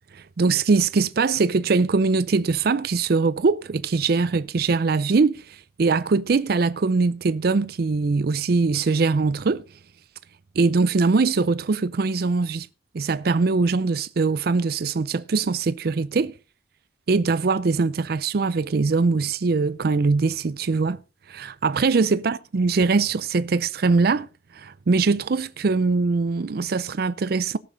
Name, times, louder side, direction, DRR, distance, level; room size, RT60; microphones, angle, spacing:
voice 1, 0.1-5.4 5.8-9.6 10.6-12.7 12.9-16.3 17.1-21.0 21.3-24.3 24.5-27.6, right 4 dB, 55° right, 0.5 m, -22 dB
18.0 x 6.9 x 3.9 m
head